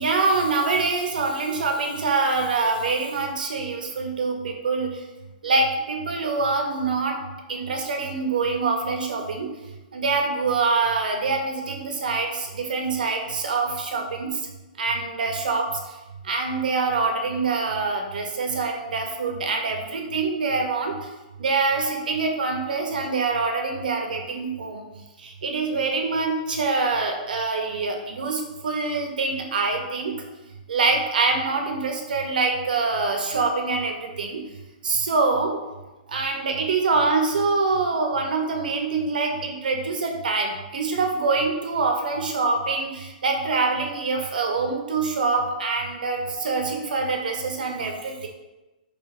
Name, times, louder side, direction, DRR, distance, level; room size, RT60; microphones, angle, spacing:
voice 1, 0.0-5.0 5.4-7.2 7.5-9.5 9.9-14.5 14.8-16.0 16.2-20.9 21.4-24.8 25.2-30.1 30.7-34.4 34.8-35.6 36.1-48.3, right 4 dB, 75° right, 3 dB, 0.8 m, -25 dB
3.8 x 3.0 x 3.6 m, 1.1 s
hypercardioid pair, 175°, 5 cm